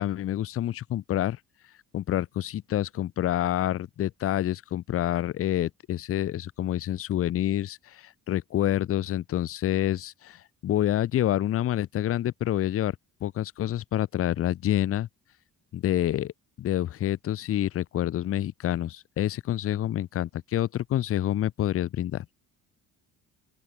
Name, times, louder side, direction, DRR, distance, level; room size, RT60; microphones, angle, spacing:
voice 1, 0.0-1.4 1.9-13.0 13.2-15.1 15.7-16.3 16.6-22.3, left 12 dB, 45° left, 0.6 m, -27 dB
open air
cardioid pair, 110°, 33 cm